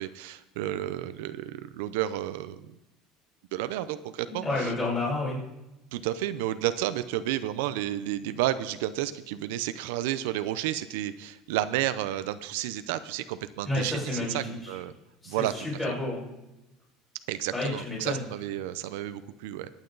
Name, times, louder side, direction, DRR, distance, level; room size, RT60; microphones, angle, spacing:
voice 1, 0.0-2.7 3.5-4.7 5.9-14.9 15.3-15.7 17.3-19.7, right 13 dB, 85° right, 12 dB, 0.7 m, -31 dB
voice 2, 4.4-5.4 13.7-14.4 14.6-14.7 15.2-16.2 17.5-18.2, left 2 dB, 15° left, -6 dB, 5.7 m, -30 dB
22.5 x 9.1 x 4.0 m, 0.96 s
cardioid pair, 170°, 0 cm